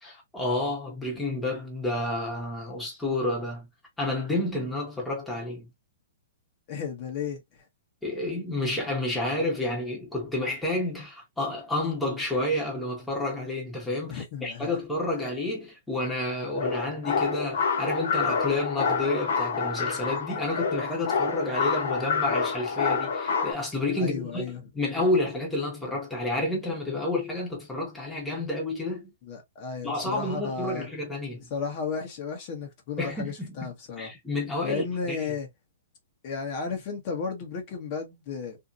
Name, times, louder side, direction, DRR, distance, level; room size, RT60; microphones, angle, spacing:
voice 1, 0.0-3.7 4.0-5.7 8.0-29.1 29.8-31.5 33.0-33.7 34.0-35.3, left 2 dB, 5° left, 1.2 m, -30 dB
voice 2, 6.7-7.4 14.1-14.7 24.0-24.6 29.3-30.9 31.5-34.1 34.6-35.5 36.2-38.6, left 5 dB, 40° left, 1.1 m, -33 dB
sound 1, 16.5-23.5, left 5 dB, 65° left, 0.7 m, -28 dB
2.7 x 2.7 x 2.5 m
hypercardioid pair, 145°, 0 cm